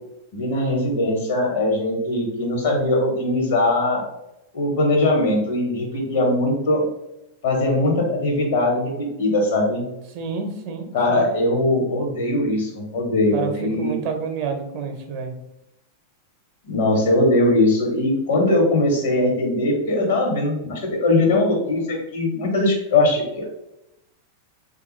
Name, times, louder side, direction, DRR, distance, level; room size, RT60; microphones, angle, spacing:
voice 1, 0.3-4.0 4.5-6.8 7.4-9.9 10.9-13.9 16.6-23.5, left 2 dB, 65° left, 0 dB, 1.1 m, -20 dB
voice 2, 10.1-11.3 13.3-15.3, right 5 dB, 50° right, 5 dB, 0.6 m, -29 dB
3.5 x 2.3 x 3.0 m, 0.88 s
figure-of-eight pair, 95°, 0 cm